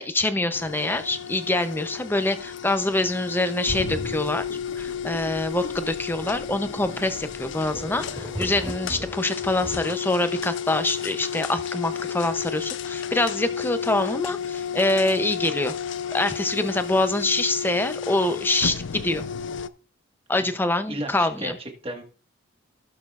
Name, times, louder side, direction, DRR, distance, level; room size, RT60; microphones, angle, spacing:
voice 1, 0.0-4.5 4.8-15.8 16.1-19.2 20.3-21.5, left 2 dB, 10° left, 10 dB, 0.6 m, -25 dB
sound 1, 0.5-19.7, left 7 dB, 60° left, 0.5 m, -33 dB
sound 2, 3.6-9.5 9.8-9.9, equal, 90° left, 1.8 m, -39 dB
sound 3, 7.6-9.9, equal, 10° right, 2.9 m, -36 dB
voice 2, 20.9-22.0, right 1 dB, 25° right, 3 dB, 1.5 m, -34 dB
16.0 x 6.8 x 2.4 m, 0.39 s
head